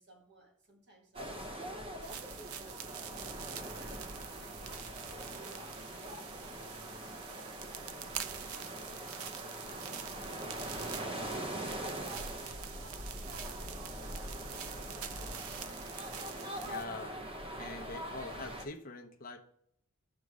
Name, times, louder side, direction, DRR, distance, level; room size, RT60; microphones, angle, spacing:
voice 1, 0.0-2.9 3.4-8.3 9.9-15.1, right 2 dB, 50° right, 1.6 m, -60 dB
sound 1, 1.1-18.6, equal, 25° right, 0.8 m, -42 dB
sound 2, 2.0-16.8, right 9 dB, 70° right, 0.6 m, -46 dB
voice 2, 16.6-17.2 17.6-19.4, left 3 dB, 40° left, 0.8 m, -44 dB
6.4 x 5.3 x 4.8 m
head